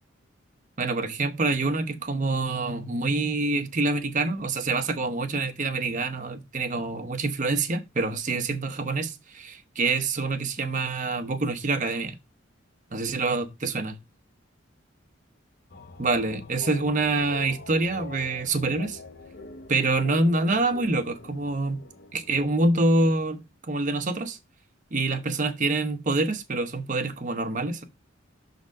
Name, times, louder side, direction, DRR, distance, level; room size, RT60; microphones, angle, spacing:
voice 1, 0.8-12.1 12.9-14.0 16.0-19.0 19.7-21.8 22.1-23.4 23.7-24.4 24.9-27.8, right 3 dB, 40° right, 0.9 m, -26 dB
sound 1, 15.7-23.2, left 2 dB, 55° left, 0.7 m, -44 dB
6.3 x 4.0 x 5.2 m
head